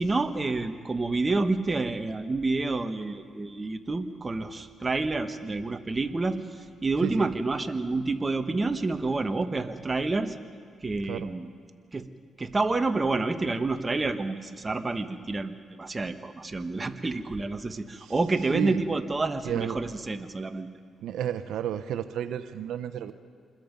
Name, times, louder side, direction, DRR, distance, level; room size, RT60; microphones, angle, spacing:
voice 1, 0.0-10.3 10.8-11.5 11.9-12.1 12.4-20.7, right 3 dB, 25° right, 8 dB, 1.4 m, -28 dB
voice 2, 7.0-7.3 11.0-11.3 18.0-18.1 18.5-18.8 19.4-19.8 21.0-23.1, right 10 dB, 85° right, 11 dB, 0.7 m, -32 dB
26.5 x 21.5 x 5.3 m, 2.1 s
cardioid pair, 75°, 0 cm